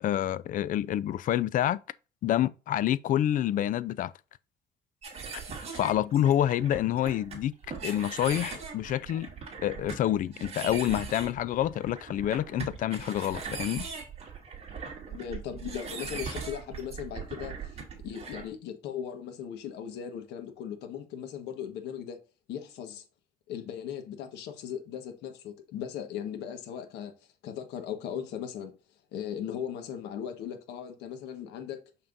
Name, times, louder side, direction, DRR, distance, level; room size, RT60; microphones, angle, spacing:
voice 1, 0.0-1.8 2.2-4.1 5.7-7.5 7.8-9.3 9.6-13.9, left 12 dB, 55° left, 0.4 m, -27 dB
sound 1, 5.0-18.5, right 5 dB, 35° right, 3.0 m, -40 dB
voice 2, 15.1-22.2 22.5-23.0 23.5-27.1 27.4-28.7 29.1-31.8, left 9 dB, 85° left, 1.4 m, -38 dB
6.6 x 5.7 x 2.6 m
cardioid pair, 110°, 17 cm